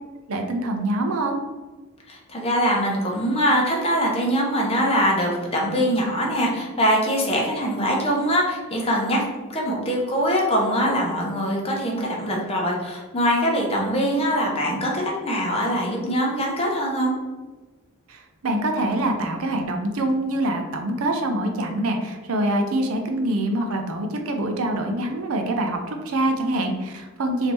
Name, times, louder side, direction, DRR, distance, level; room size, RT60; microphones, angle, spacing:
voice 1, 0.3-1.4 18.1-27.5, right 1 dB, 75° right, 4 dB, 0.6 m, -25 dB
voice 2, 2.1-9.2 9.5-17.1, equal, 25° left, -2 dB, 0.8 m, -23 dB
3.4 x 2.8 x 4.3 m, 1.3 s
head